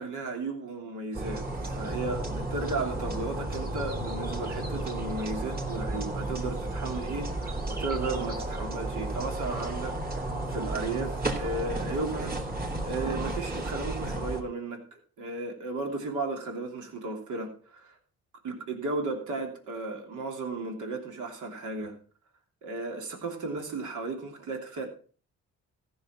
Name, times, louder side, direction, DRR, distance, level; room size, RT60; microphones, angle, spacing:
voice 1, 0.0-12.4 12.8-18.0 18.4-22.0 22.6-24.9, right 3 dB, 75° right, 3.0 m, -35 dB
sound 1, 1.1-14.4, right 1 dB, 30° right, 3.1 m, -33 dB
15.0 x 6.6 x 5.9 m
cardioid pair, 90°, 30 cm